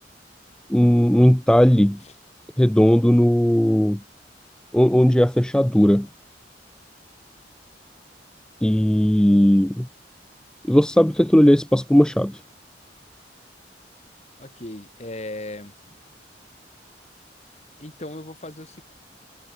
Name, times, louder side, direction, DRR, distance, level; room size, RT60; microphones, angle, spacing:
voice 1, 0.7-2.0 2.6-4.0 4.7-6.1 8.6-9.9 10.7-12.4, equal, 5° left, 0.4 m, -17 dB
voice 2, 14.4-16.0 17.8-18.8, left 1 dB, 40° left, 2.4 m, -37 dB
head